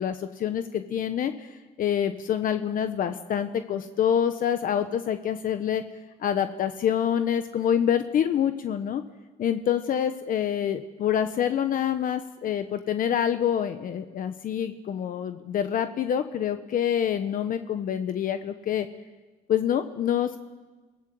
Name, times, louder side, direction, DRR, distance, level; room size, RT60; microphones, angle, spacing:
voice 1, 0.0-1.5 1.8-5.8 6.2-9.0 9.4-18.9 19.5-20.4, left 9 dB, 55° left, 9 dB, 1.1 m, -26 dB
28.0 x 17.5 x 7.7 m, 1.3 s
cardioid pair, 110°, 17 cm